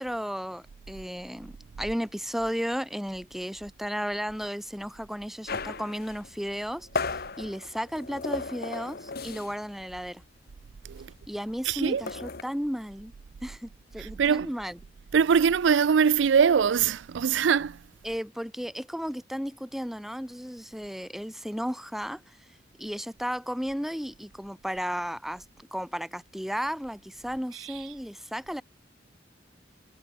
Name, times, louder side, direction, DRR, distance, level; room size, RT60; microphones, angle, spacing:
voice 1, 0.0-10.2 11.3-13.1 13.4-14.8 18.0-22.4 22.8-25.4 25.7-28.6, equal, ahead, 1.6 m, -34 dB
sound 1, 5.5-9.7 10.0-10.2 10.5-12.4, left 4 dB, 55° left, 1.3 m, -36 dB
voice 2, 11.6-12.0 14.0-14.5 15.1-17.8 27.5-27.9, right 7 dB, 80° right, 0.4 m, -23 dB
head